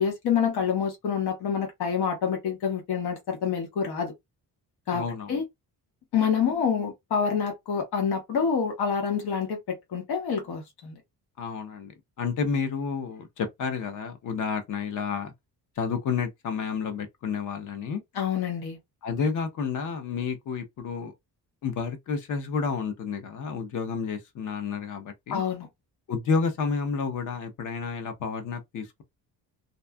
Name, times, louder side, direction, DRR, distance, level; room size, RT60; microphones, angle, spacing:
voice 1, 0.0-4.1 4.9-5.0 5.3-5.4 6.1-11.0 18.1-18.8 25.3-25.7, left 7 dB, 80° left, 1.1 m, -27 dB
voice 2, 4.9-5.4 11.4-11.9 12.2-15.3 15.8-18.0 19.0-21.1 21.6-25.4 26.1-29.0, left 5 dB, 50° left, 0.7 m, -30 dB
2.6 x 2.3 x 2.2 m
cardioid pair, 165°, 38 cm